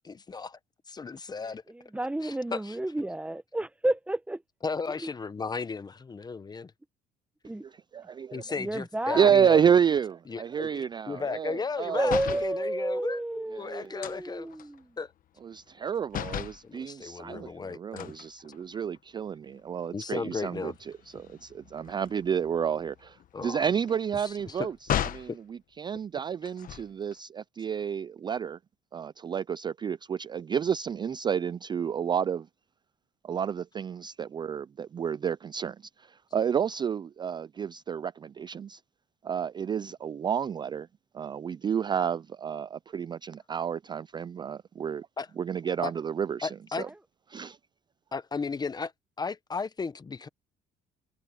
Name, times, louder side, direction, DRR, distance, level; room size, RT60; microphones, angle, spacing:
voice 1, 0.0-0.6 0.9-1.6 2.2-2.8 4.6-6.7 8.3-9.6 10.3-14.5 15.0-15.1 16.6-18.1 19.9-20.7 23.3-23.6 24.2-24.7 25.3-25.4 45.2-45.3 45.8-45.9 46.4-46.9 48.1-48.9 49.2-50.3, left 4 dB, 25° left, 0.8 m, -35 dB
voice 2, 1.4-4.4 4.9-5.0 7.4-7.6 8.5-9.3 11.9-15.0 46.8-46.9, right 1 dB, 5° right, 1.0 m, -31 dB
voice 3, 7.9-8.4 9.1-12.1 13.5-13.9 15.4-20.7 21.1-24.7 25.1-28.6 28.9-32.5 33.2-38.8 39.2-40.9 41.1-45.1 45.4-46.5 46.8-46.9 47.3-47.6, right 8 dB, 25° right, 0.3 m, -30 dB
sound 1, 12.0-12.5 14.0-15.8 16.1-16.6 18.0-19.0 19.5-19.7 20.0-25.4 26.4-27.1, left 11 dB, 55° left, 1.1 m, -37 dB
cardioid pair, 110°, 17 cm